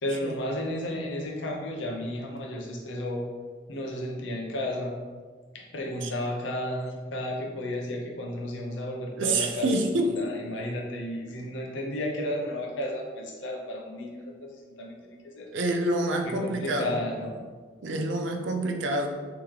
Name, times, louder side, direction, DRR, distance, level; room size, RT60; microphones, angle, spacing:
voice 1, 0.0-3.3 3.7-5.0 5.5-15.5 16.2-17.4, left 1 dB, 80° left, 0 dB, 0.7 m, -33 dB
voice 2, 9.2-10.1 15.5-17.0 17.8-19.1, right 2 dB, 80° right, 3 dB, 0.5 m, -27 dB
3.6 x 2.9 x 3.1 m, 1.5 s
head